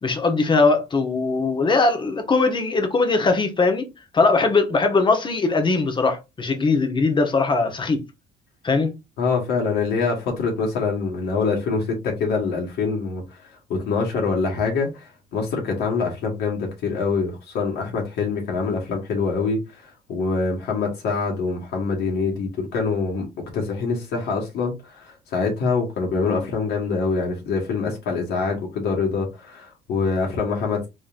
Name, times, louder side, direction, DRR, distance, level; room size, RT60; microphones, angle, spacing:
voice 1, 0.0-3.9 4.1-8.0 8.6-8.9, left 3 dB, 30° left, 1.0 m, -20 dB
voice 2, 9.2-13.4 13.7-23.3 23.5-30.9, left 4 dB, 75° left, 1.6 m, -25 dB
3.9 x 3.7 x 2.5 m
cardioid pair, 110°, 17 cm